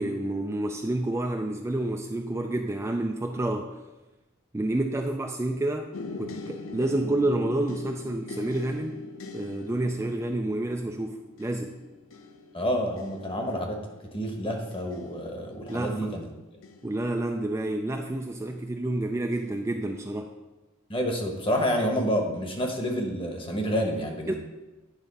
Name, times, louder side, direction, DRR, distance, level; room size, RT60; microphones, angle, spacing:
voice 1, 0.0-3.8 4.5-9.0 9.3-11.8 15.7-16.1 16.8-20.3 24.3-24.4, right 1 dB, 15° right, 3 dB, 0.4 m, -29 dB
sound 1, 5.9-17.8 18.5-18.9 19.3-19.6, left 3 dB, 70° left, 0.5 m, -43 dB
voice 2, 12.5-13.8 14.1-16.3 20.9-24.3, equal, 25° left, 2 dB, 1.1 m, -28 dB
9.8 x 3.6 x 5.4 m, 1.1 s
head